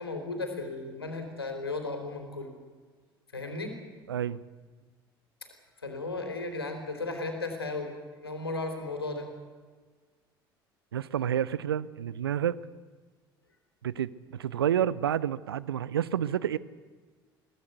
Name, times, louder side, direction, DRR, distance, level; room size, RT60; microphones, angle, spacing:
voice 1, 0.0-2.6 3.3-3.8 5.8-7.9 8.2-9.3, left 3 dB, 90° left, 5 dB, 3.4 m, -35 dB
voice 2, 4.1-4.4 10.9-12.6 13.8-16.6, right 10 dB, 80° right, 20 dB, 0.7 m, -29 dB
22.5 x 17.0 x 8.2 m, 1.5 s
figure-of-eight pair, 60°, 12 cm